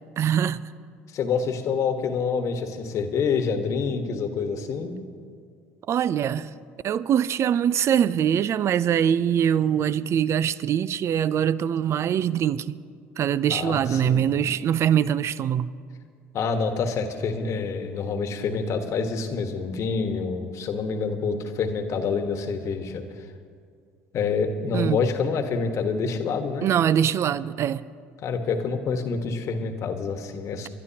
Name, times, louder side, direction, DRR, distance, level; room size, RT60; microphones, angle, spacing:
voice 1, 0.2-0.7 5.9-6.5 6.8-12.8 13.2-15.7 24.7-25.0 26.6-27.8, right 9 dB, 45° right, 0.5 m, -23 dB
voice 2, 1.1-5.0 13.5-14.2 16.3-23.0 24.1-26.7 28.2-30.7, left 5 dB, 55° left, 1.4 m, -27 dB
28.5 x 12.0 x 2.9 m
hypercardioid pair, 65°, 6 cm